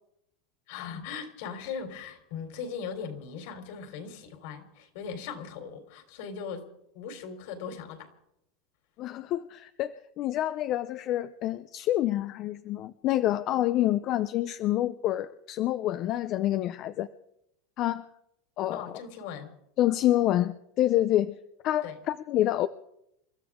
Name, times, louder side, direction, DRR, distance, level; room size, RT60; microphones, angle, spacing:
voice 1, 0.7-6.7 6.9-8.1 18.7-19.5 21.8-22.0, left 6 dB, 65° left, 5 dB, 3.6 m, -39 dB
voice 2, 9.0-17.1 17.8-18.1 18.6-18.8 19.8-21.4 21.6-22.7, left 13 dB, 40° left, 12 dB, 0.5 m, -27 dB
29.0 x 13.5 x 3.7 m, 0.78 s
supercardioid pair, 145°, 0 cm